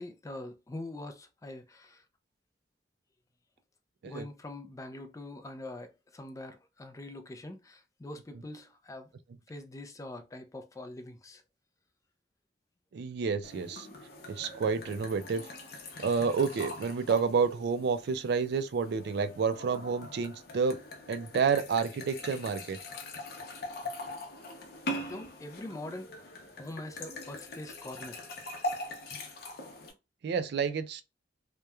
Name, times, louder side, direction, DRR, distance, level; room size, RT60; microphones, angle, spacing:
voice 1, 0.0-2.0 4.0-9.1 9.5-11.4 25.1-26.1 26.6-28.2, left 1 dB, 20° left, 0.3 m, -43 dB
voice 2, 12.9-13.9 14.3-15.4 16.0-20.8 21.1-22.8 30.2-31.0, right 5 dB, 65° right, 0.3 m, -29 dB
sound 1, 13.4-29.9, left 1 dB, 60° left, 0.6 m, -42 dB
2.9 x 2.1 x 2.2 m
head